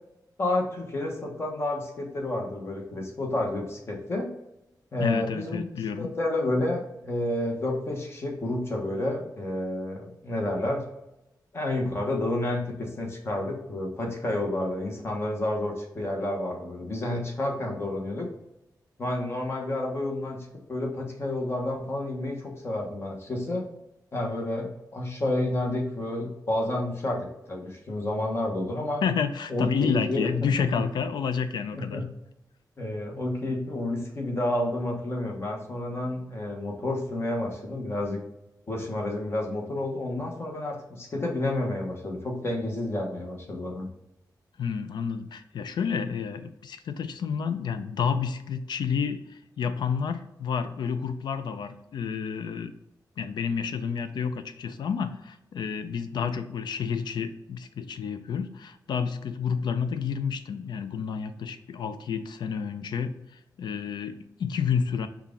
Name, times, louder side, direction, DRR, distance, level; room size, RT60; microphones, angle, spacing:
voice 1, 0.4-4.3 4.9-5.7 6.0-10.8 11.5-18.3 19.0-23.6 24.1-29.0 29.5-30.3 30.6-30.7 31.7-32.0 32.8-38.2 38.7-43.9, left 1 dB, 35° left, 0 dB, 1.0 m, -30 dB
voice 2, 5.0-6.1 29.0-32.0 44.6-52.7 53.2-63.2 63.6-65.1, left 6 dB, 90° left, 10 dB, 0.4 m, -30 dB
5.7 x 2.4 x 3.7 m, 0.87 s
wide cardioid pair, 170°, 7 cm